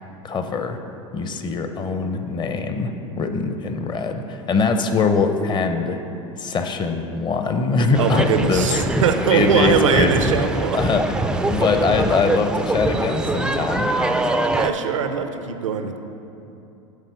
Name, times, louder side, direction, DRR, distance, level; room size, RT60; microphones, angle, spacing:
voice 1, 0.2-0.8 1.1-6.0 6.4-9.0 9.3-10.1 10.7-11.2 11.5-13.9, left 4 dB, 30° left, 7 dB, 0.7 m, -22 dB
sound 1, 7.9-14.7, right 2 dB, 5° right, 0.3 m, -23 dB
voice 2, 8.0-10.8 14.5-16.0, right 7 dB, 90° right, 7 dB, 0.5 m, -21 dB
8.1 x 4.1 x 6.9 m, 2.8 s
hypercardioid pair, 95°, 16 cm